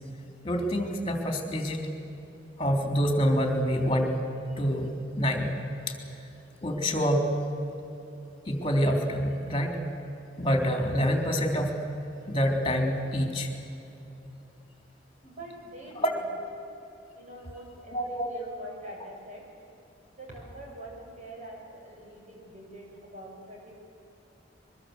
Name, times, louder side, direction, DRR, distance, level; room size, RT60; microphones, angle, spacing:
voice 1, 0.4-1.8 2.6-4.2 4.5-4.9 5.1-5.5 5.9-6.0 6.6-7.3 8.5-9.8 10.4-11.8 12.3-13.5 16.0-16.1 17.9-18.3, equal, 30° left, 3 dB, 3.6 m, -26 dB
voice 2, 15.2-16.3 17.1-19.5 20.2-23.8, right 1 dB, 40° right, -2 dB, 7.4 m, -44 dB
23.0 x 22.5 x 8.0 m, 3.0 s
head